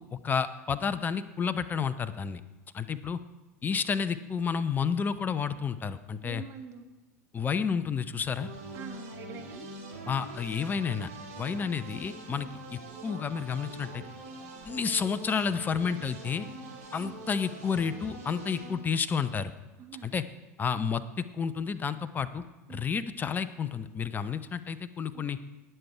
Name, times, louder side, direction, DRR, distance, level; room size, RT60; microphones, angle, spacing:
voice 1, 0.0-2.4 2.7-3.2 3.6-6.4 7.3-8.5 10.1-11.1 11.4-14.0 14.7-16.5 16.9-19.5 20.0-20.2 20.6-22.4 22.7-25.4, left 6 dB, 20° left, 13 dB, 0.7 m, -31 dB
voice 2, 6.2-6.9 8.7-9.8 11.4-11.6 12.4-12.5 17.0-17.2 19.8-20.1 22.7-22.8 25.1-25.3, right 7 dB, 35° right, 5 dB, 1.7 m, -45 dB
sound 1, 8.4-18.7, right 2 dB, 65° right, 4.2 m, -44 dB
18.5 x 6.9 x 4.7 m, 1.1 s
figure-of-eight pair, 80°, 9 cm